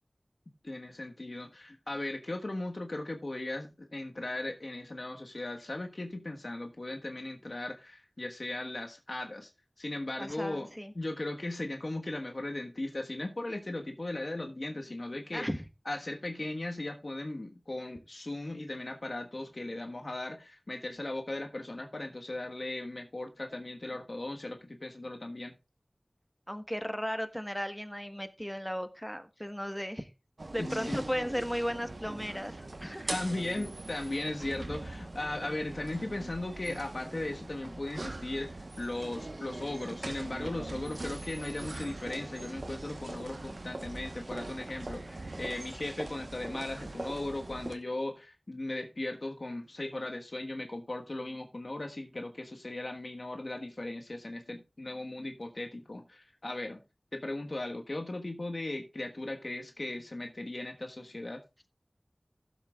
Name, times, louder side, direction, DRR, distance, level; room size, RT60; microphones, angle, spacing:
voice 1, 0.6-9.5 9.8-10.7 10.9-15.5 15.8-25.5 30.6-31.0 33.1-56.8 57.1-61.4, left 2 dB, 70° left, 1.3 m, -37 dB
voice 2, 10.2-10.9 15.3-15.6 26.5-30.1 30.5-33.1, equal, 5° left, 1.3 m, -35 dB
sound 1, 30.4-47.7, right 2 dB, 80° right, 1.0 m, -42 dB
16.0 x 7.3 x 2.4 m
wide cardioid pair, 45°, 0 cm